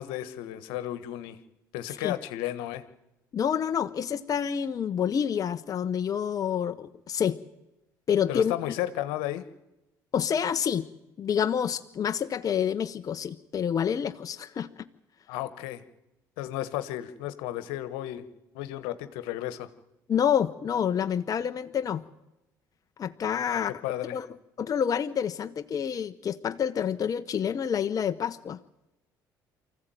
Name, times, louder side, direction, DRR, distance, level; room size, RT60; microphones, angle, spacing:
voice 1, 0.0-1.4 1.7-2.8 8.3-9.4 15.3-15.8 16.4-18.3 18.5-19.7 23.5-24.2, left 13 dB, 80° left, 12 dB, 1.4 m, -33 dB
voice 2, 3.3-7.4 8.1-8.5 10.1-10.9 11.2-14.7 20.1-22.0 23.0-23.8 24.1-24.3 24.6-28.6, left 8 dB, 45° left, 9 dB, 0.9 m, -28 dB
24.0 x 15.0 x 9.2 m, 0.94 s
supercardioid pair, 70°, 8 cm